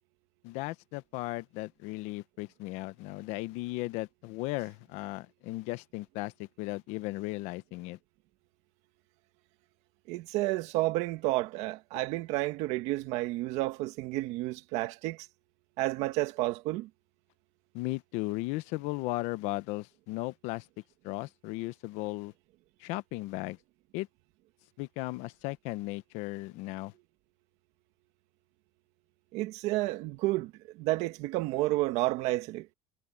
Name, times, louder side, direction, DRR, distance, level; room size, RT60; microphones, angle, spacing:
voice 1, 0.4-8.0 17.7-20.7 21.0-22.3 22.8-23.6 23.9-24.1 24.8-26.9, left 20 dB, 80° left, 0.9 m, -36 dB
voice 2, 10.1-15.3 15.8-16.9 29.3-32.7, right 18 dB, 75° right, 1.6 m, -31 dB
cardioid pair, 155°, 11 cm